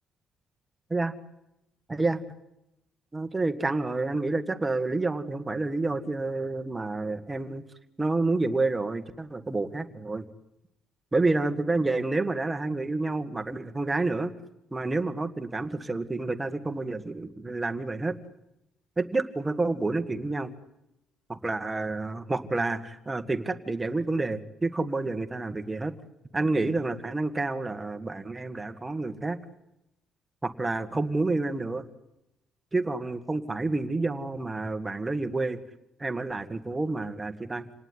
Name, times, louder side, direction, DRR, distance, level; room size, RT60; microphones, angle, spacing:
voice 1, 1.9-2.2 3.1-7.6 8.0-10.3 11.1-14.3 14.7-18.2 19.0-20.5 21.3-25.9 26.3-29.4 30.4-31.8 32.7-35.6 36.0-37.7, right 3 dB, 15° right, 8 dB, 1.8 m, -29 dB
28.0 x 19.0 x 9.8 m, 0.87 s
cardioid pair, 130°, 0 cm